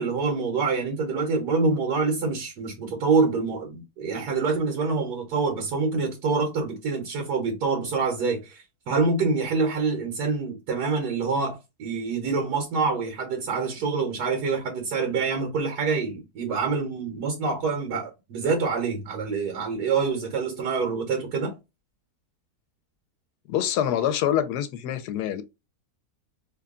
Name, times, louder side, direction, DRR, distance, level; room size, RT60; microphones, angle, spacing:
voice 1, 0.0-21.5, right 4 dB, 90° right, 1.6 m, -26 dB
voice 2, 23.5-25.4, left 10 dB, 90° left, 1.1 m, -25 dB
3.3 x 2.3 x 3.6 m
omnidirectional pair, 1.7 m